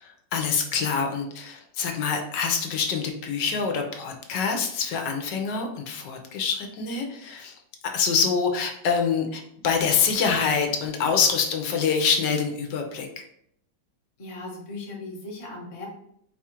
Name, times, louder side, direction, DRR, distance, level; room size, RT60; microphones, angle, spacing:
voice 1, 0.0-7.6 7.9-13.2, left 6 dB, 75° left, 3 dB, 1.3 m, -25 dB
voice 2, 14.2-15.9, left 2 dB, 25° left, -2 dB, 0.8 m, -38 dB
4.6 x 2.4 x 4.3 m, 0.71 s
omnidirectional pair, 1.9 m